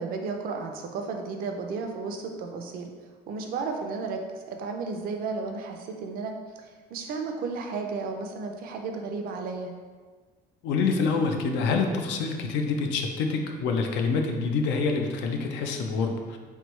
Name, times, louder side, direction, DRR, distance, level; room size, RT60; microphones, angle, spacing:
voice 1, 0.0-2.9 3.3-6.3 6.9-9.7, right 4 dB, 55° right, 3 dB, 0.5 m, -33 dB
voice 2, 10.6-16.4, left 4 dB, 85° left, 3 dB, 0.5 m, -26 dB
3.5 x 3.2 x 3.1 m, 1.4 s
cardioid pair, 160°, 18 cm